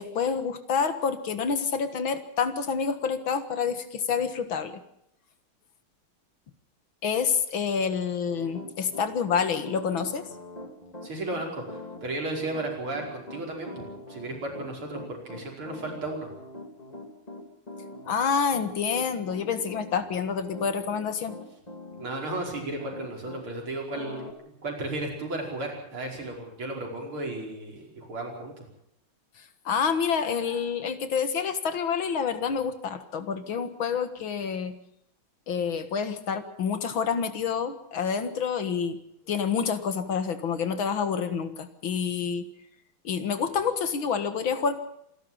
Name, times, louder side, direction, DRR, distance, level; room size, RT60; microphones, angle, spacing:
voice 1, 0.0-4.8 7.0-10.3 18.1-21.3 29.7-34.7 35.5-39.0 39.3-42.5 43.0-44.8, left 6 dB, 70° left, 10 dB, 2.4 m, -28 dB
Piano, 8.3-23.5 23.9-24.3, left 2 dB, 20° left, 2.5 m, -43 dB
voice 2, 11.0-16.3 22.0-24.2 24.6-28.7, right 2 dB, 85° right, 0 dB, 6.0 m, -34 dB
26.5 x 12.5 x 8.9 m, 0.76 s
omnidirectional pair, 2.3 m